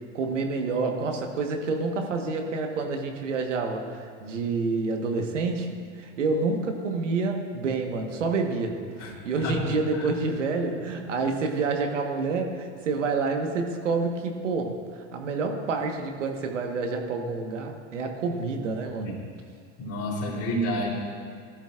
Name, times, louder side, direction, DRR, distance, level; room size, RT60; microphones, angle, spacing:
voice 1, 0.1-14.8 15.1-19.2, right 4 dB, 90° right, 3 dB, 1.5 m, -28 dB
voice 2, 19.8-20.9, equal, 55° left, -5 dB, 3.7 m, -29 dB
18.5 x 13.0 x 2.5 m, 2.1 s
hypercardioid pair, 85°, 36 cm